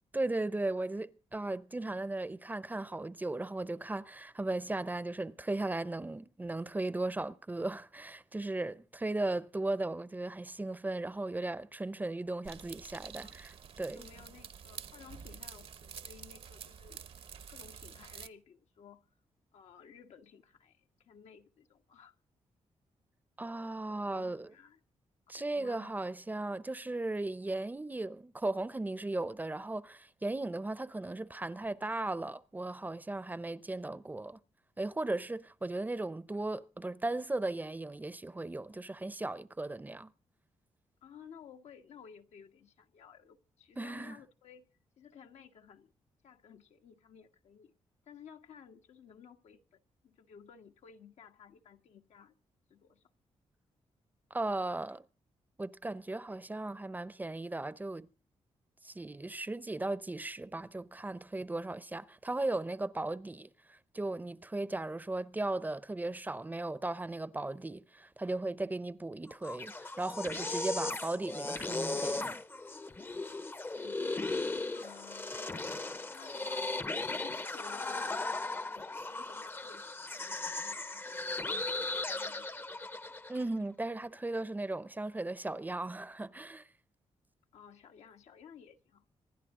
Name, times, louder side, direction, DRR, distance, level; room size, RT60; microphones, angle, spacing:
voice 1, 0.1-14.1 23.4-24.5 25.3-34.4 34.8-40.1 43.8-44.2 54.3-55.0 55.6-58.1 58.8-72.4 83.3-86.7, right 2 dB, 15° right, 0.6 m, -37 dB
sound 1, 12.4-18.3, right 7 dB, 60° right, 0.9 m, -48 dB
voice 2, 13.9-17.0 17.5-19.0 19.5-22.1 23.9-24.8 25.3-26.1 41.0-44.6 45.0-45.9 46.2-47.7 48.0-52.3 52.7-53.0 73.7-74.2 74.7-78.2 78.4-83.0 87.5-89.1, left 7 dB, 80° left, 1.5 m, -56 dB
sound 2, 69.3-83.4, left 2 dB, 20° left, 0.7 m, -37 dB
26.0 x 11.0 x 3.7 m
cardioid pair, 110°, 11 cm